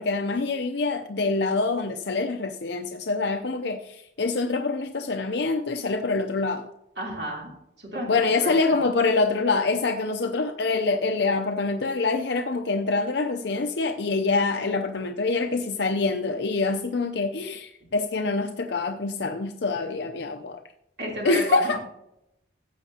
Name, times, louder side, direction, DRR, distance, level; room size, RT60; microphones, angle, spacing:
voice 1, 0.0-6.7 8.1-20.6 21.2-21.8, left 3 dB, 65° left, 5 dB, 0.6 m, -25 dB
voice 2, 7.0-7.5 7.8-8.5 21.0-21.8, right 1 dB, 60° right, -3 dB, 3.3 m, -32 dB
15.0 x 8.3 x 2.9 m, 0.84 s
head